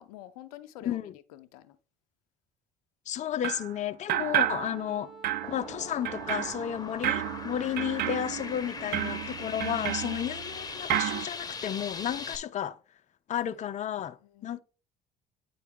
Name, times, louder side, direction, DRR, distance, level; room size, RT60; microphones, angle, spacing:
voice 1, 0.0-1.8 8.6-9.0 13.4-13.7 14.3-14.6, left 13 dB, 90° left, 0.5 m, -49 dB
voice 2, 0.8-1.1 3.1-5.1 5.5-12.8 13.3-14.6, left 10 dB, 40° left, 0.5 m, -32 dB
sound 1, 3.4-3.7 4.1-5.0 5.2-10.6 10.9-11.2, right 13 dB, 60° right, 0.5 m, -32 dB
Wind instrument woodwind instrument, 4.3-9.4, right 3 dB, ahead, 1.4 m, -50 dB
sound 2, 5.4-12.4, left 4 dB, 20° left, 0.9 m, -40 dB
9.2 x 3.9 x 3.6 m
supercardioid pair, 70°, 18 cm